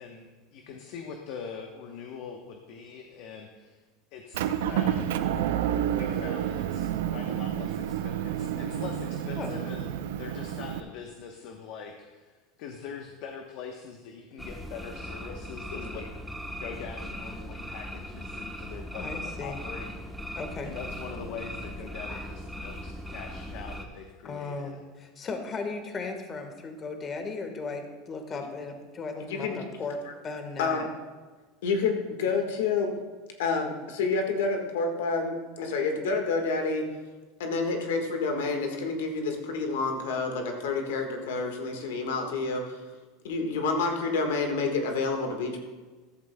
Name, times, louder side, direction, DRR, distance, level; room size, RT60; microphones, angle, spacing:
voice 1, 0.0-3.8 4.1-5.1 5.8-12.3 12.6-16.1 16.6-20.0 20.6-24.8, left 6 dB, 65° left, 3 dB, 0.9 m, -43 dB
Motor vehicle (road) / Engine, 4.3-10.8, right 10 dB, 80° right, 0.5 m, -29 dB
sound 1, 14.4-23.9, equal, ahead, 1.0 m, -39 dB
voice 2, 15.7-16.0 28.3-28.4 29.2-29.6 30.0-30.1 30.6-30.9 31.6-32.9 33.4-36.8 37.4-42.8 43.2-45.6, left 4 dB, 85° left, 3 dB, 1.5 m, -29 dB
voice 3, 19.0-19.6 20.3-20.7 24.2-30.9, left 3 dB, 30° left, 5 dB, 1.4 m, -36 dB
14.0 x 11.0 x 2.2 m, 1.3 s
supercardioid pair, 110°, 0 cm